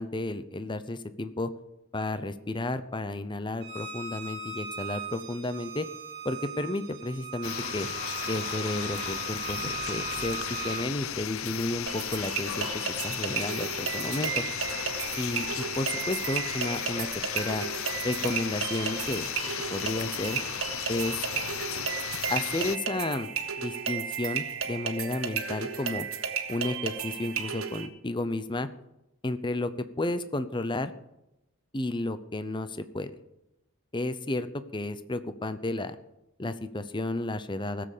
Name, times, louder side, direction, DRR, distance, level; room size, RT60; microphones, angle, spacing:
voice 1, 0.0-1.5 1.9-5.9 6.2-7.9 8.3-10.4 10.6-14.4 15.2-17.6 18.0-19.3 19.7-20.4 20.9-21.2 22.3-23.3 23.6-26.1 26.5-28.7 29.2-29.7 30.0-30.9 31.7-33.1 33.9-34.5 34.7-36.0 36.4-37.9, left 2 dB, 25° left, 12 dB, 0.7 m, -32 dB
Bowed string instrument, 3.6-10.9, right 6 dB, 50° right, 1.9 m, -39 dB
sound 1, 7.4-22.8, left 9 dB, 85° left, 0.6 m, -35 dB
sound 2, 11.9-27.9, right 7 dB, 90° right, 1.4 m, -34 dB
16.5 x 7.7 x 6.7 m, 0.88 s
head